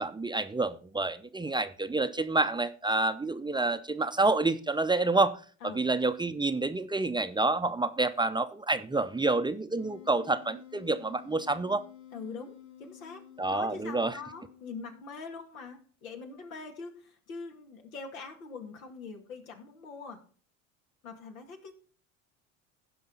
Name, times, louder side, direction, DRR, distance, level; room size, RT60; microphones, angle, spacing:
voice 1, 0.0-5.4 5.7-11.8 13.4-14.1, right 2 dB, 10° right, 0.6 m, -28 dB
Wind instrument woodwind instrument, 9.8-15.2, left 11 dB, 45° left, 1.6 m, -52 dB
voice 2, 12.1-20.2 21.0-21.7, left 4 dB, 85° left, 2.2 m, -43 dB
16.0 x 5.4 x 3.9 m
hypercardioid pair, 80°, 40 cm